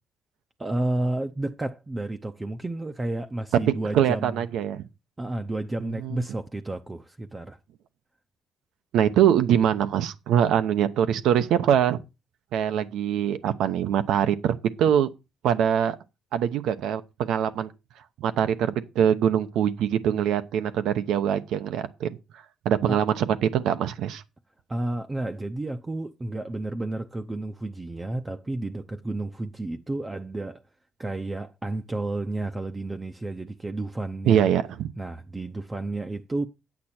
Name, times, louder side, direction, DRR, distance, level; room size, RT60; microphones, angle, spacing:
voice 1, 0.6-4.4 5.2-7.6 22.9-23.0 24.7-30.6 31.0-34.5 35.0-36.5, right 2 dB, 15° right, 0.6 m, -31 dB
voice 2, 3.9-4.8 6.0-6.2 8.9-12.0 12.5-15.1 15.4-16.0 16.3-17.7 18.2-22.1 22.6-24.2 34.3-34.9, right 9 dB, 85° right, 0.8 m, -23 dB
9.7 x 8.4 x 4.3 m
cardioid pair, 150°, 0 cm